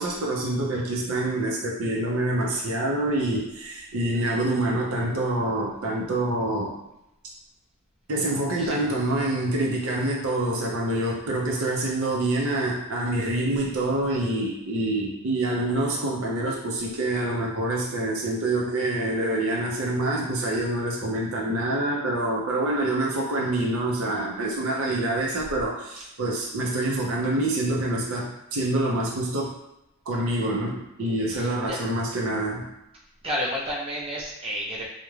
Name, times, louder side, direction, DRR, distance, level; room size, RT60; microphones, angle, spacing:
voice 1, 0.0-6.8 8.1-29.6 30.1-32.7, right 1 dB, 65° right, -2 dB, 0.5 m, -26 dB
voice 2, 31.3-31.8 33.2-34.9, equal, 25° right, -5 dB, 0.6 m, -31 dB
2.4 x 2.1 x 3.1 m, 0.88 s
head